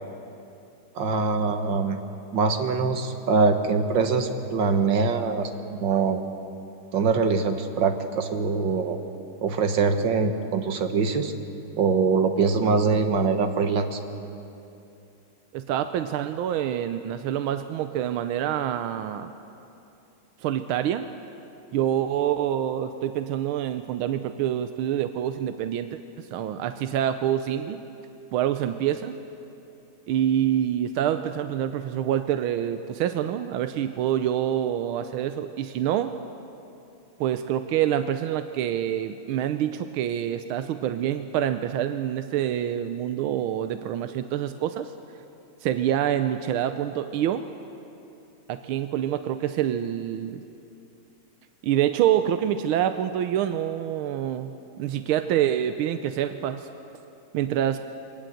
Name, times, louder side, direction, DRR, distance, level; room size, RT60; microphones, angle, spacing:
voice 1, 1.0-2.0 2.3-6.2 6.9-9.0 9.4-11.3 11.8-14.0, right 4 dB, 65° right, 7 dB, 1.9 m, -23 dB
voice 2, 15.5-19.3 20.4-21.1 21.7-25.9 26.2-27.8 28.3-29.1 30.1-36.1 37.2-44.9 45.6-47.5 48.5-50.4 51.6-56.7 57.3-57.8, right 10 dB, 85° right, 9 dB, 1.5 m, -26 dB
23.0 x 19.0 x 7.8 m, 2.7 s
omnidirectional pair, 2.3 m